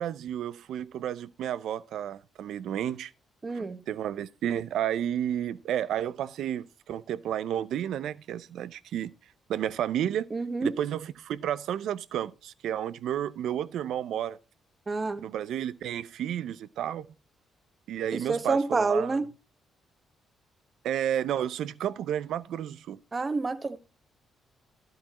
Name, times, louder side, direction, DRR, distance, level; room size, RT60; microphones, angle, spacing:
voice 1, 0.0-3.1 3.5-9.1 9.5-10.3 10.6-14.4 15.2-17.1 17.9-19.2 20.8-23.0, right 10 dB, 75° right, 0.6 m, -31 dB
voice 2, 3.4-3.8 10.3-10.7 14.9-15.2 18.1-19.3 23.1-23.8, right 3 dB, 30° right, 1.3 m, -28 dB
12.0 x 7.8 x 3.0 m
cardioid pair, 90°, 0 cm